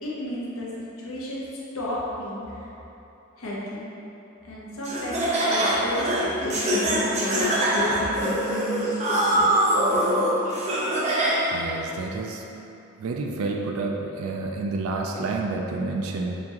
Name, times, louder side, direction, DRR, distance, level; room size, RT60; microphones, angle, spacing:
voice 1, 0.0-0.7 1.0-1.4 1.7-2.7 3.4-3.9 4.4-10.3, equal, 85° left, -6 dB, 0.8 m, -32 dB
Laughter, 4.8-11.7, right 1 dB, 30° right, 0.5 m, -23 dB
voice 2, 11.5-12.4 13.0-16.4, right 3 dB, 85° right, 1 dB, 0.4 m, -29 dB
4.3 x 2.8 x 2.8 m, 2.9 s
head